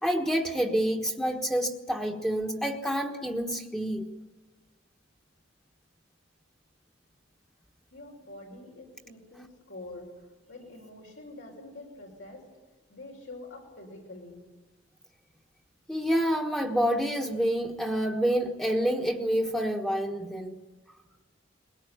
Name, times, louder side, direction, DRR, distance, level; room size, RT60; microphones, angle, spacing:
voice 1, 0.0-4.1 15.9-20.6, equal, 5° left, 1 dB, 1.3 m, -28 dB
voice 2, 7.9-10.1 10.5-12.4 12.9-14.4, left 2 dB, 85° left, -1 dB, 6.2 m, -46 dB
21.5 x 18.0 x 9.3 m, 1.3 s
head